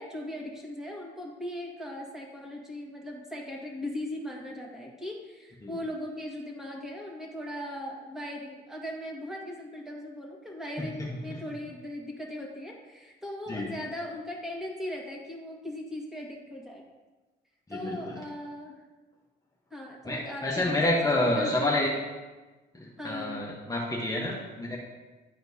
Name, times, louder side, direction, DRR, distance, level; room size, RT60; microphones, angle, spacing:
voice 1, 0.0-16.8 17.7-18.7 19.7-20.8 21.1-22.0 23.0-23.4, left 1 dB, ahead, -2 dB, 1.6 m, -38 dB
voice 2, 17.7-18.2 20.0-21.9 22.7-24.8, left 1 dB, 20° left, -3 dB, 1.1 m, -28 dB
11.0 x 4.3 x 2.7 m, 1.2 s
cardioid pair, 90°, 20 cm